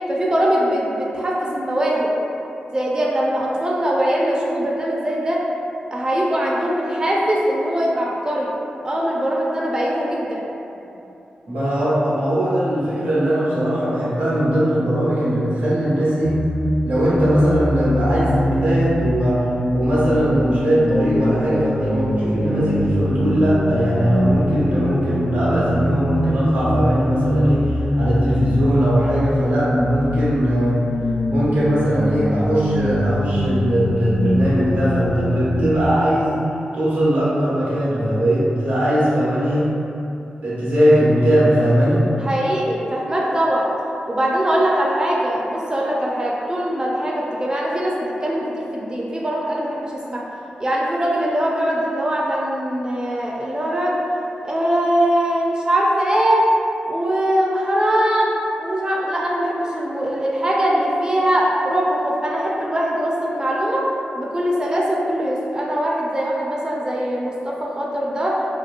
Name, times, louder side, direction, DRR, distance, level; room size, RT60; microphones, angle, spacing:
voice 1, 0.1-2.1 2.7-5.4 5.9-8.5 8.8-10.4 42.2-43.7 44.1-50.2 50.6-54.0 54.4-56.5 56.9-58.3 58.6-63.9 64.2-68.4, equal, 25° right, -4 dB, 0.4 m, -21 dB
voice 2, 11.5-16.4 16.8-19.4 19.7-30.8 31.3-36.3 36.7-39.7 40.4-42.0, equal, 85° right, -9 dB, 0.9 m, -20 dB
sound 1, 16.2-35.9, equal, 75° left, 1.1 m, -22 dB
2.8 x 2.5 x 2.5 m, 2.8 s
cardioid pair, 50°, 3 cm